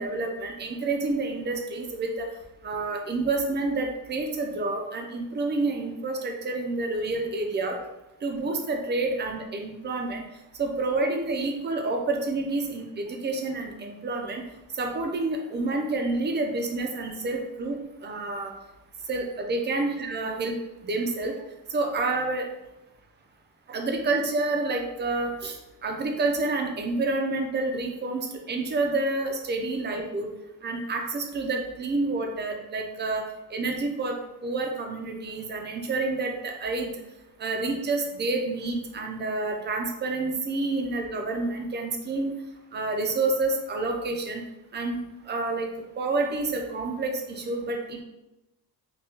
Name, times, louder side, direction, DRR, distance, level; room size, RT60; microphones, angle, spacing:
voice 1, 0.0-2.3 2.6-7.8 8.2-10.2 10.6-14.4 14.7-18.5 19.1-20.5 20.8-21.3 21.7-22.5 23.7-30.3 30.6-33.2 33.5-36.9 37.4-42.4 42.7-44.4 44.7-45.0 45.3-45.7 46.0-48.0, right 3 dB, 30° right, 3 dB, 0.4 m, -28 dB
3.5 x 2.1 x 2.8 m, 0.96 s
wide cardioid pair, 150°, 39 cm